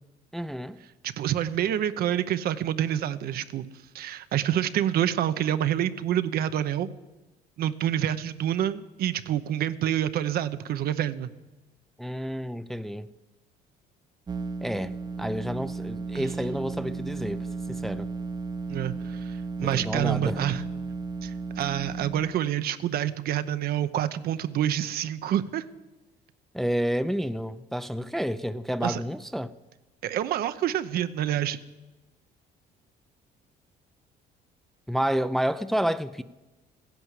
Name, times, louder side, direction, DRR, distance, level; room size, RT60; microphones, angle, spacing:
voice 1, 0.3-0.8 12.0-13.1 14.6-18.1 19.6-20.4 26.5-29.5 34.9-36.2, equal, ahead, 0.5 m, -30 dB
voice 2, 1.0-3.7 3.9-6.9 7.6-11.3 16.1-16.3 18.7-20.6 21.2-25.6 28.8-29.0 30.0-31.6, right 11 dB, 65° right, 0.8 m, -27 dB
sound 1, 14.3-22.3, right 4 dB, 25° right, 0.8 m, -34 dB
15.0 x 10.5 x 8.2 m
cardioid pair, 110°, 17 cm